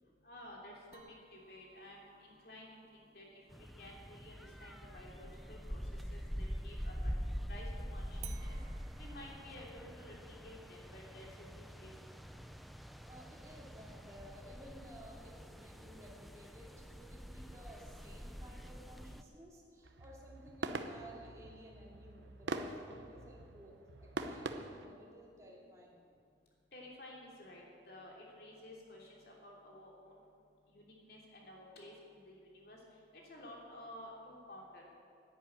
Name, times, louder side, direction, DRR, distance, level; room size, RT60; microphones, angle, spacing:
voice 1, 0.2-1.0 1.3-3.4 3.8-5.8 6.1-7.1 7.5-7.7 7.9-8.6 8.9-10.1 10.4-11.9 26.7-30.2 30.7-32.8 33.3-34.9, left 1 dB, 55° left, -2 dB, 3.2 m, -53 dB
sound 1, 0.9-6.5 8.2-13.2, right 9 dB, 35° right, 0.9 m, -61 dB
sound 2, 3.5-19.2, equal, ahead, 0.4 m, -45 dB
voice 2, 13.1-26.0, equal, 15° right, -3 dB, 2.4 m, -56 dB
sound 3, 19.8-24.9, right 2 dB, 75° right, 0.8 m, -44 dB
10.5 x 10.5 x 8.9 m, 2.5 s
head